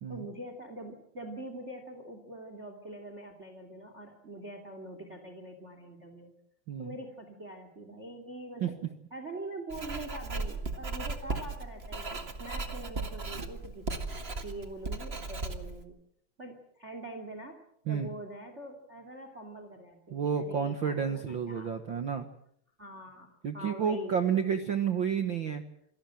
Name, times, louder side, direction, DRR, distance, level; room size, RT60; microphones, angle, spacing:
voice 1, 0.1-6.3 6.8-8.7 9.1-14.0 14.4-16.0 16.4-17.6 17.9-21.7 22.8-24.1, right 1 dB, 20° right, 6 dB, 2.6 m, -44 dB
Writing, 9.7-15.8, right 3 dB, 40° right, 0.9 m, -37 dB
voice 2, 20.1-22.3 23.4-25.6, right 7 dB, 65° right, 8 dB, 1.1 m, -30 dB
27.5 x 19.0 x 7.7 m, 0.69 s
omnidirectional pair, 4.3 m